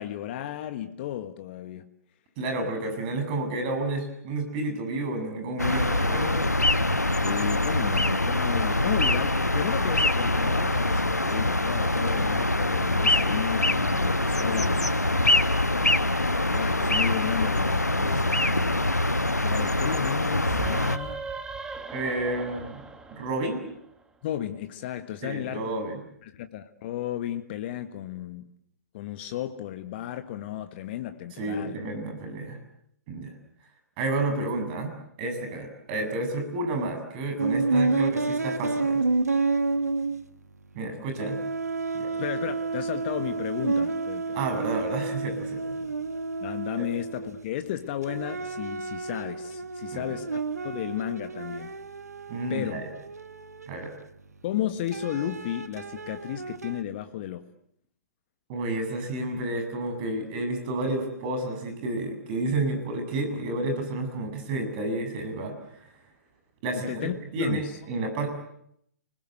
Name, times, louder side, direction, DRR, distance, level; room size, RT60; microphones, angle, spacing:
voice 1, 0.0-1.9 7.2-15.1 16.5-19.0 19.4-21.3 24.2-25.7 26.2-28.5 28.9-31.8 42.2-44.4 46.4-51.7 52.5-52.8 54.4-57.5 66.9-67.8, left 11 dB, 40° left, 1.6 m, -34 dB
voice 2, 2.4-6.4 21.9-22.8 23.1-23.7 25.2-26.0 31.4-32.6 33.1-33.3 34.0-39.0 40.8-41.4 41.9-42.1 44.3-45.8 46.8-46.9 49.9-50.1 52.3-52.9 53.7-53.9 58.5-65.8 66.6-68.3, right 2 dB, 35° right, 7.3 m, -30 dB
sound 1, 5.6-21.0, left 1 dB, 90° left, 1.3 m, -24 dB
sound 2, 20.4-24.0, right 4 dB, 10° right, 2.1 m, -38 dB
sound 3, 37.4-40.9 41.1-47.6 48.0-54.3 54.9-56.8, right 3 dB, 75° right, 1.6 m, -30 dB
30.0 x 21.0 x 8.0 m
figure-of-eight pair, 120°, 9 cm